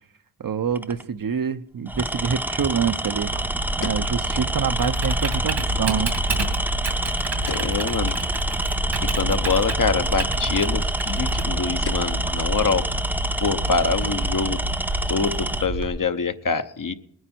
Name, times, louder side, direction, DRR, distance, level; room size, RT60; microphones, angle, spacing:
voice 1, 0.4-3.5 3.8-6.1, right 7 dB, 50° right, 10 dB, 0.8 m, -26 dB
Tools, 0.7-1.0 1.9-15.7, right 1 dB, 5° right, 0.4 m, -28 dB
sound 1, 1.2-1.3 3.3-4.7 5.0-5.1 5.4-5.5 6.1-7.0 7.4-8.3 8.8-8.9 9.9-10.1 10.5-10.7 10.9-11.3 11.8-12.9 13.2-13.3 13.9-14.2 14.5-14.6, left 4 dB, 60° left, 1.5 m, -39 dB
Typing, 3.2-15.9, right 1 dB, 80° right, 2.6 m, -28 dB
voice 2, 7.5-8.1 9.0-12.9 13.4-14.6 15.1-16.9, left 5 dB, 45° left, 9 dB, 0.9 m, -25 dB
19.5 x 9.4 x 4.4 m, 0.70 s
cardioid pair, 45°, 44 cm